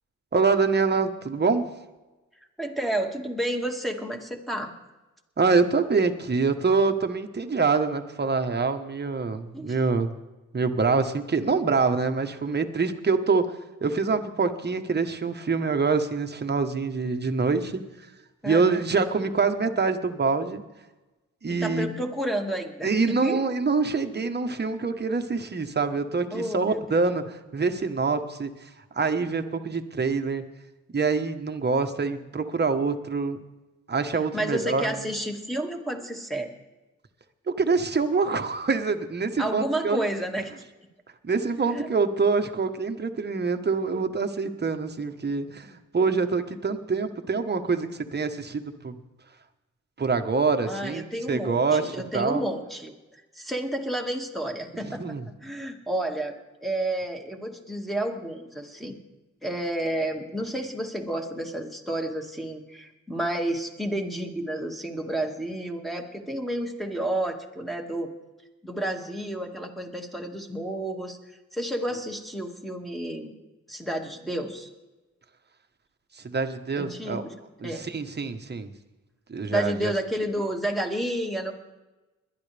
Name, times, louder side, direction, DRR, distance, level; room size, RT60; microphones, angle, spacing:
voice 1, 0.3-1.6 5.4-10.1 10.5-17.8 18.4-20.6 21.4-22.0 22.8-30.4 30.9-33.4 33.9-35.0 37.5-40.0 41.2-49.0 50.0-52.4 54.8-55.2 76.1-77.2 77.6-78.7 79.3-79.9, right 4 dB, 30° right, 7 dB, 1.3 m, -25 dB
voice 2, 2.6-4.7 9.5-9.7 18.4-18.7 21.5-23.4 26.3-27.0 34.3-36.5 39.4-40.5 41.7-41.9 50.7-59.0 59.4-68.1 68.6-71.2 71.5-73.3 73.7-74.7 76.8-77.3 77.6-77.9 79.5-81.5, right 1 dB, ahead, 2 dB, 2.2 m, -31 dB
21.5 x 11.5 x 3.5 m, 1.1 s
cardioid pair, 75°, 31 cm